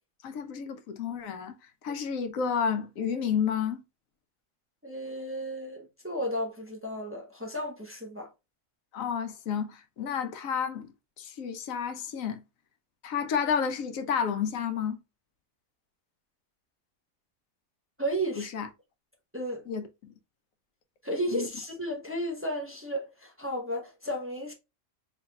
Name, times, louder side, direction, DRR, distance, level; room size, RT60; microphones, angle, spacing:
voice 1, 0.2-1.6 1.8-3.8 8.9-12.4 13.0-15.0 18.4-18.7 19.7-20.1 21.3-21.5, left 7 dB, 90° left, 1.1 m, -31 dB
voice 2, 4.8-8.3 18.0-18.5 19.3-19.7 21.0-24.5, equal, 10° right, 0.7 m, -33 dB
4.2 x 3.3 x 2.2 m
omnidirectional pair, 1.4 m